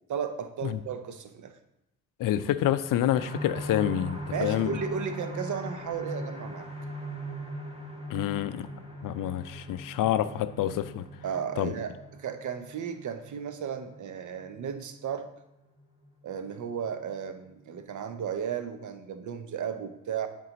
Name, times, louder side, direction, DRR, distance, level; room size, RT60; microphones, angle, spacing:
voice 1, 0.1-1.6 4.3-6.7 11.2-15.3 16.2-20.3, right 7 dB, 45° right, 9 dB, 0.8 m, -34 dB
voice 2, 2.2-4.7 8.1-8.7 9.0-11.0 11.6-11.7, left 12 dB, 55° left, 13 dB, 0.5 m, -27 dB
sound 1, 3.2-16.6 17.1-17.2 17.6-17.7, equal, 15° right, 1.2 m, -40 dB
7.7 x 3.9 x 4.0 m, 0.87 s
hypercardioid pair, 60°, 40 cm